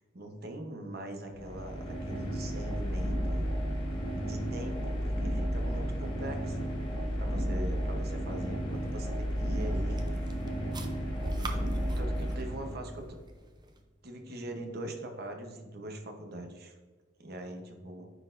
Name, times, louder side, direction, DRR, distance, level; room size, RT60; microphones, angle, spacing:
voice 1, 0.1-3.5 4.1-6.7 7.1-10.3 11.4-11.6 12.0-13.2 14.0-16.8 17.2-18.1, right 1 dB, 55° right, 4 dB, 0.9 m, -42 dB
sound 1, 1.3-13.1, equal, 25° left, 1.3 m, -33 dB
sound 2, 8.7-13.8, right 3 dB, 25° right, 0.5 m, -47 dB
9.5 x 4.1 x 2.6 m, 1.3 s
head